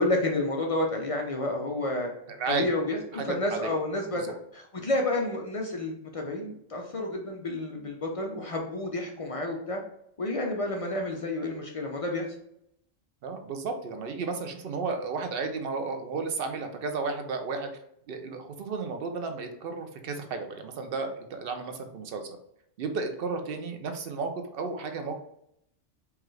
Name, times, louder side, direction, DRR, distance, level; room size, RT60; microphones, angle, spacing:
voice 1, 0.0-2.1 2.5-9.8 10.2-12.3, left 2 dB, 55° left, 1 dB, 0.4 m, -30 dB
voice 2, 2.3-2.7 3.1-3.7 4.1-4.3 13.2-17.7 18.1-22.4 22.8-25.2, right 4 dB, 60° right, 6 dB, 0.7 m, -33 dB
4.7 x 2.4 x 3.1 m, 0.75 s
omnidirectional pair, 1.3 m